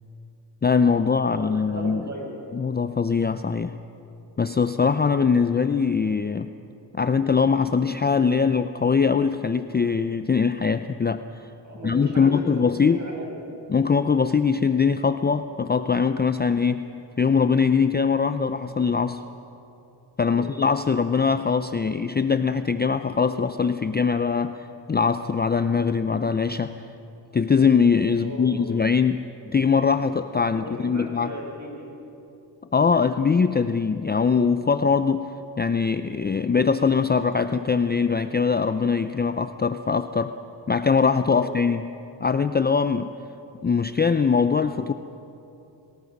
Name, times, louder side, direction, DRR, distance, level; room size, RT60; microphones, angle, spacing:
voice 1, 0.6-2.0 2.5-3.8 4.4-6.5 6.9-11.2 11.8-13.0 13.7-16.8 17.2-19.2 20.2-26.9 27.3-31.3 32.7-35.3 35.6-40.3 40.7-41.9 42.2-43.1 43.6-44.9, left 5 dB, 20° left, 10 dB, 0.5 m, -22 dB
voice 2, 1.2-2.4 11.6-13.6 20.2-20.5 28.2-28.7 30.5-31.9 41.3-41.5, equal, 35° right, -1 dB, 6.4 m, -36 dB
27.5 x 19.5 x 5.4 m, 2.9 s
cardioid pair, 90°, 46 cm